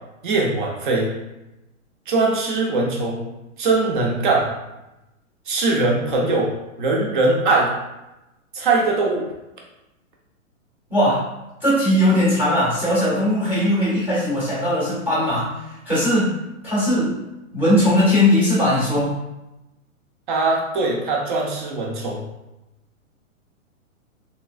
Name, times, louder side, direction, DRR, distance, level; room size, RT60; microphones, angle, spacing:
voice 1, 0.2-1.1 2.1-3.3 3.6-4.5 5.5-7.7 8.5-9.3 20.3-22.2, right 3 dB, 35° right, -1 dB, 0.7 m, -21 dB
voice 2, 10.9-11.2 11.6-15.5 15.9-16.3 16.6-17.2 17.5-19.1, left 1 dB, 5° right, -8 dB, 0.7 m, -19 dB
3.3 x 2.8 x 2.5 m, 0.95 s
hypercardioid pair, 160°, 41 cm